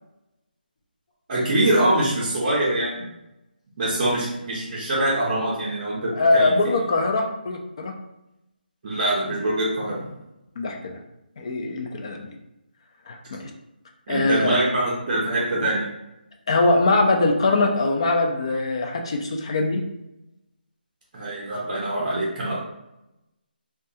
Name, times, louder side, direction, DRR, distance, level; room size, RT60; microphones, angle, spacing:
voice 1, 1.3-3.1 3.8-6.7 8.8-10.1 14.1-15.8 21.1-22.5, right 1 dB, 30° right, -8 dB, 0.6 m, -24 dB
voice 2, 6.1-7.9 10.6-11.0 11.4-12.4 13.1-13.5 14.1-14.6 16.5-19.8, left 2 dB, 35° left, 2 dB, 0.3 m, -22 dB
2.3 x 2.2 x 2.6 m, 0.90 s
hypercardioid pair, 170°, 5 cm